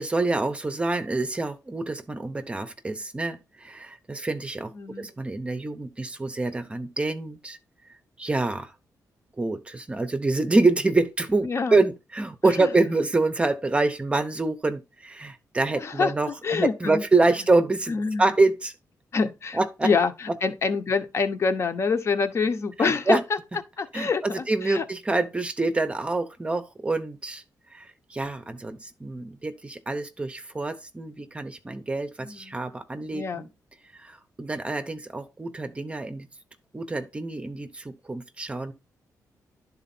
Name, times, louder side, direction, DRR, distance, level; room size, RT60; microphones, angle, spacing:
voice 1, 0.0-4.7 5.0-7.6 8.2-8.7 9.4-18.7 19.5-19.9 22.8-23.2 23.9-27.4 27.7-33.5 33.9-36.3 36.7-38.7, right 3 dB, 20° right, 0.7 m, -26 dB
voice 2, 4.7-5.1 11.4-11.8 12.6-12.7 15.8-16.1 16.4-17.0 17.9-18.3 19.1-23.2 23.8-24.8 32.2-32.6 33.1-33.4, left 5 dB, 45° left, 1.0 m, -26 dB
11.5 x 4.0 x 4.2 m
wide cardioid pair, 145°, 7 cm